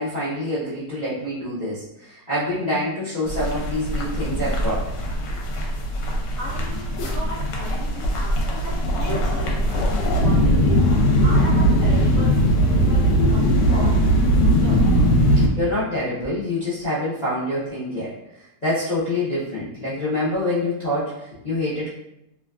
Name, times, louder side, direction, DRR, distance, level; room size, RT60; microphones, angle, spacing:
voice 1, 0.0-4.9 7.0-7.1 15.5-21.9, left 1 dB, 45° left, -11 dB, 0.5 m, -26 dB
sound 1, 3.3-15.5, equal, 85° left, 1.2 m, -20 dB
voice 2, 6.4-10.9 11.2-14.3 14.6-14.8, right 2 dB, 65° right, -7 dB, 0.8 m, -36 dB
3.0 x 2.3 x 2.3 m, 0.83 s
omnidirectional pair, 1.9 m